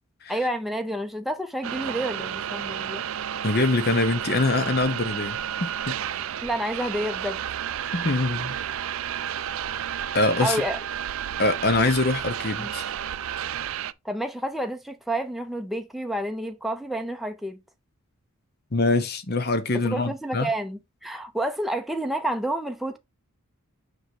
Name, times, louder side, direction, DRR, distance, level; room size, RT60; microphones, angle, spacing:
voice 1, 0.3-3.1 6.4-7.4 10.4-10.8 12.6-12.7 14.0-17.6 19.8-23.0, right 1 dB, ahead, 0.6 m, -29 dB
sound 1, 1.6-13.9, right 9 dB, 65° right, 0.4 m, -31 dB
voice 2, 3.4-5.9 7.9-8.5 10.1-10.6 11.4-12.8 18.7-20.5, left 2 dB, 45° left, 0.9 m, -24 dB
6.7 x 3.6 x 4.5 m
head